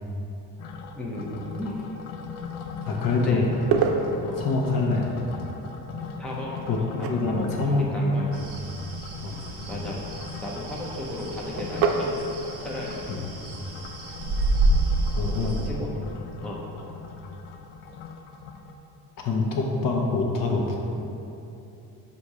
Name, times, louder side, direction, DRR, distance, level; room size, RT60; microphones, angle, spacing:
sound 1, 0.6-18.7, left 6 dB, 80° left, 0.6 m, -40 dB
voice 1, 0.9-1.8 3.1-3.6 4.2-4.5 6.2-8.2 9.7-10.1 10.4-12.3 12.6-13.0 15.7-16.0 16.4-16.6, left 1 dB, ahead, -4 dB, 0.6 m, -34 dB
voice 2, 2.8-3.4 4.4-5.1 6.7-8.4 9.2-9.4 13.1-13.2 15.1-15.7 16.8-16.9 19.2-20.8, left 3 dB, 55° left, 0 dB, 1.0 m, -25 dB
sound 2, 3.5-18.0, right 5 dB, 65° right, 0.6 m, -34 dB
sound 3, 8.3-15.7, right 2 dB, 35° right, 0.9 m, -29 dB
7.7 x 2.8 x 5.5 m, 2.9 s
cardioid pair, 145°, 41 cm